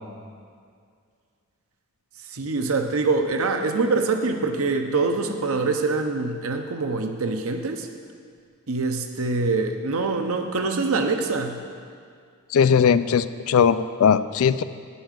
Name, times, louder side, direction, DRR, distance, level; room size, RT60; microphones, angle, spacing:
voice 1, 2.3-7.9 8.7-11.6, right 3 dB, 65° right, 5 dB, 0.8 m, -24 dB
voice 2, 12.5-14.6, left 7 dB, 70° left, 14 dB, 0.3 m, -19 dB
9.8 x 5.5 x 7.3 m, 2.2 s
head